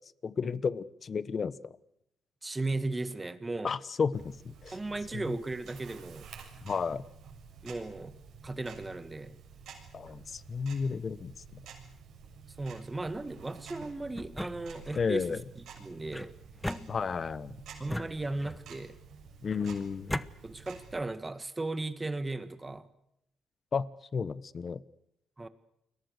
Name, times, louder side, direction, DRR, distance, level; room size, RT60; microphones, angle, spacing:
voice 1, 0.2-1.7 3.6-4.8 5.1-5.2 6.6-7.0 9.9-11.6 14.9-15.4 16.9-17.6 19.4-20.2 23.7-23.9 24.1-24.8, left 5 dB, 40° left, 18 dB, 1.1 m, -32 dB
voice 2, 2.4-3.7 4.7-6.3 7.6-8.2 8.4-9.4 12.6-15.4 15.8-16.3 17.8-19.0 20.4-22.9 25.4-25.5, right 2 dB, 20° right, 12 dB, 1.9 m, -36 dB
Tick-tock, 4.1-21.0, right 6 dB, 75° right, 6.9 m, -51 dB
sound 1, 14.1-15.1 16.1-17.4 17.9-18.8 19.5-20.3, left 1 dB, 5° left, 1.0 m, -38 dB
30.0 x 22.5 x 6.7 m, 0.79 s
cardioid pair, 110°, 0 cm